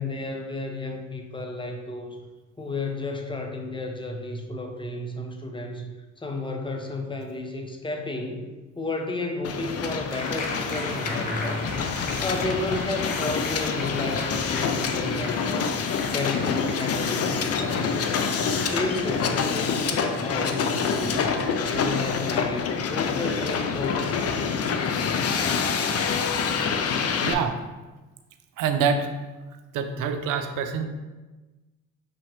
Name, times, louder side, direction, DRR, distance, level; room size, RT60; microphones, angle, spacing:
voice 1, 0.0-2.2 2.6-5.9 6.2-8.5 8.8-11.7 12.2-15.7 16.1-18.2 18.4-21.3 21.7-24.6, left 2 dB, 15° left, 3 dB, 0.8 m, -32 dB
Hiss, 9.4-27.3, left 6 dB, 50° left, 0.5 m, -26 dB
sound 1, 10.1-25.0, left 2 dB, 70° left, 1.1 m, -39 dB
voice 2, 27.2-27.6 28.6-29.1 29.7-30.8, right 6 dB, 70° right, 7 dB, 0.6 m, -25 dB
6.2 x 2.8 x 3.0 m, 1.2 s
supercardioid pair, 55°, 33 cm